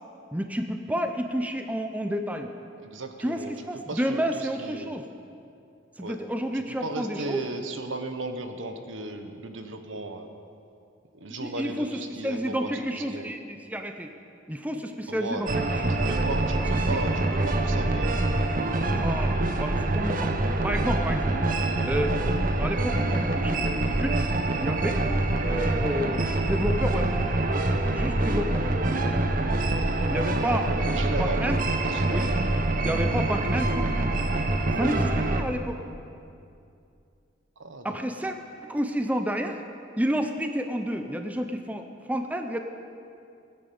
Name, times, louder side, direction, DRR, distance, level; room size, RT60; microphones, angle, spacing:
voice 1, 0.3-2.5 3.2-5.1 6.0-7.4 11.4-14.1 14.5-16.2 16.9-17.0 18.8-21.4 21.8-22.2 22.6-24.2 24.6-25.0 25.4-27.1 27.9-28.8 30.1-30.7 31.2-31.6 32.1-34.1 34.8-35.8 37.8-38.4 38.6-39.6 40.0-42.6, equal, 10° right, 6 dB, 0.6 m, -30 dB
voice 2, 2.8-3.5 3.9-4.9 6.0-6.2 6.5-10.3 11.1-13.3 15.1-15.5 15.9-18.2 30.4-31.5 31.9-32.4 37.6-37.9, right 2 dB, 75° right, 6 dB, 1.2 m, -36 dB
sound 1, 15.5-35.4, right 2 dB, 45° right, 1.0 m, -25 dB
17.0 x 10.0 x 7.0 m, 2.5 s
head